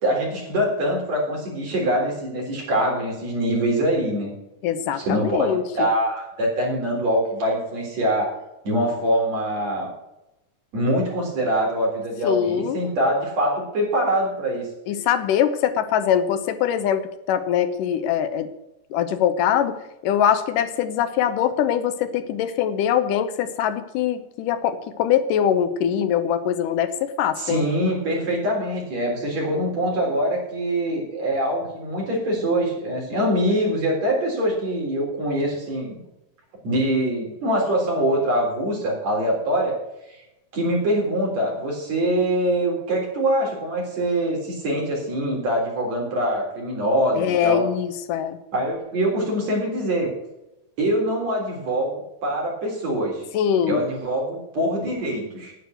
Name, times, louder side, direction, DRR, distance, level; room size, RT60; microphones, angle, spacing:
voice 1, 0.0-4.3 5.0-8.3 8.6-9.9 10.7-14.7 27.4-36.0 36.6-39.7 40.1-40.2 40.5-47.7 48.5-50.1 50.8-53.3 53.6-55.5, right 1 dB, 55° right, -2 dB, 4.8 m, -24 dB
voice 2, 4.6-5.9 12.2-12.8 14.9-18.5 18.9-19.8 20.0-27.7 47.2-48.4 53.3-53.8, left 9 dB, 80° left, 11 dB, 2.4 m, -22 dB
9.5 x 9.5 x 7.9 m, 0.90 s
omnidirectional pair, 3.8 m